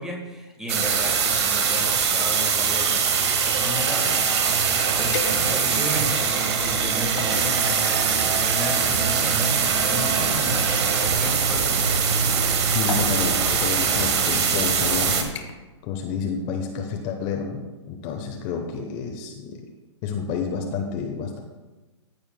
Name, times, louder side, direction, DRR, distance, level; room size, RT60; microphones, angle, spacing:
voice 1, 0.0-4.5 5.0-10.7 11.0-11.8, equal, 5° right, 1 dB, 1.5 m, -34 dB
sound 1, 0.7-15.2, right 6 dB, 65° right, 1.3 m, -22 dB
sound 2, 0.8-8.0, right 3 dB, 30° right, 2.6 m, -42 dB
sound 3, 5.1-5.9 6.5-7.4 8.3-11.2 12.3-12.5 12.9-13.2 14.1-14.2 14.6-14.9 15.3-15.8 16.1-16.4 16.8-16.9, left 5 dB, 75° left, 1.4 m, -37 dB
voice 2, 12.7-15.3 15.8-17.6 17.9-19.6 20.0-21.4, left 5 dB, 35° left, 3 dB, 0.9 m, -29 dB
14.5 x 6.9 x 2.2 m, 1.2 s
hypercardioid pair, 135°, 15 cm